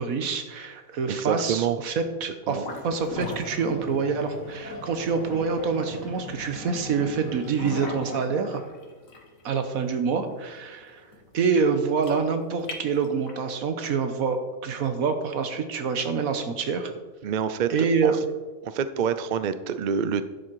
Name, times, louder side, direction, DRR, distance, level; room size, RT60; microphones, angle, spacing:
voice 1, 0.0-8.6 9.4-11.1 11.3-16.9 17.7-18.2, right 5 dB, 80° right, 8 dB, 1.5 m, -26 dB
voice 2, 1.1-1.8 2.5-2.6 17.2-17.7 18.0-18.1 18.6-20.2, right 7 dB, 60° right, 12 dB, 0.5 m, -26 dB
sound 1, 2.5-13.5, left 2 dB, 70° left, 1.9 m, -39 dB
11.0 x 7.5 x 4.7 m, 1.2 s
omnidirectional pair, 1.5 m